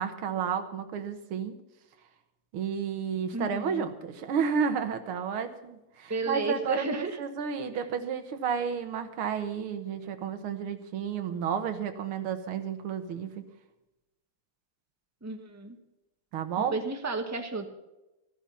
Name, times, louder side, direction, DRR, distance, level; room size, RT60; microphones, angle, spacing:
voice 1, 0.0-1.6 2.5-13.4 16.3-16.8, right 7 dB, 75° right, 8 dB, 2.1 m, -32 dB
voice 2, 3.3-3.8 6.1-7.2 15.2-15.8 16.7-17.7, right 3 dB, 10° right, 5 dB, 1.1 m, -32 dB
13.0 x 12.5 x 5.7 m, 0.98 s
omnidirectional pair, 2.4 m